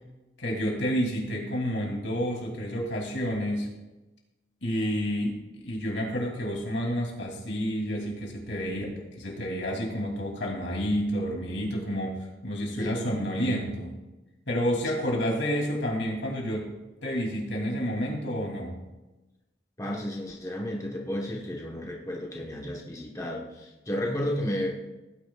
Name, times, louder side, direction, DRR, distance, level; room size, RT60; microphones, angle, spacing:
voice 1, 0.4-3.7 4.6-13.9 14.5-16.7 17.0-18.8, equal, 90° left, 0 dB, 2.9 m, -29 dB
voice 2, 19.8-24.7, left 1 dB, 20° left, -1 dB, 1.2 m, -32 dB
17.0 x 9.9 x 2.4 m, 1.1 s
head